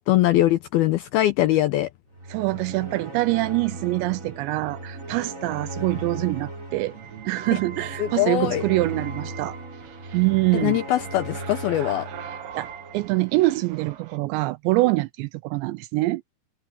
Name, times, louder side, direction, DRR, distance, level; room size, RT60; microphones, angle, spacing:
voice 1, 0.1-1.9 7.5-7.6 8.0-8.6 10.5-12.1, left 14 dB, 90° left, 2.2 m, -22 dB
sound 1, 2.1-13.4, right 2 dB, 15° right, 4.6 m, -37 dB
voice 2, 2.3-7.0 7.3-9.6 10.1-10.8 12.6-16.2, right 20 dB, 80° right, 2.7 m, -24 dB
sound 2, 6.7-14.2, right 9 dB, 65° right, 3.3 m, -41 dB
omnidirectional pair, 5.3 m